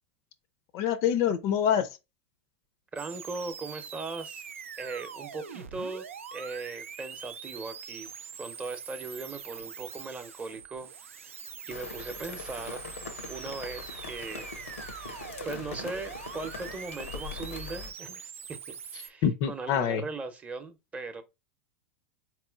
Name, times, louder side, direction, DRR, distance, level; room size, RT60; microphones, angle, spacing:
voice 1, 0.7-1.9 19.2-20.0, left 9 dB, 50° left, 0.5 m, -26 dB
voice 2, 2.9-4.4 4.8-6.0 6.3-8.1 8.4-11.3 11.7-12.8 13.3-15.1 15.4-18.6 18.9-21.2, right 3 dB, 20° right, 0.7 m, -39 dB
sound 1, 3.0-19.1, right 7 dB, 80° right, 0.4 m, -43 dB
Rain, 11.7-17.9, left 4 dB, 80° left, 0.7 m, -42 dB
4.2 x 3.1 x 2.3 m
hypercardioid pair, 90°, 7 cm